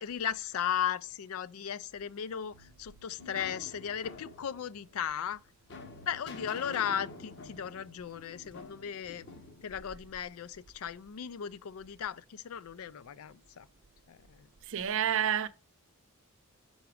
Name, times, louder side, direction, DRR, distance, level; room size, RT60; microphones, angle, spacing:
voice 1, 0.0-5.4 6.1-9.3 9.6-13.7 14.1-14.5, left 8 dB, 70° left, 0.4 m, -36 dB
sound 1, 2.5-10.6, left 3 dB, 55° left, 1.0 m, -49 dB
voice 2, 14.7-15.5, right 9 dB, 65° right, 0.6 m, -29 dB
5.9 x 3.9 x 4.7 m
head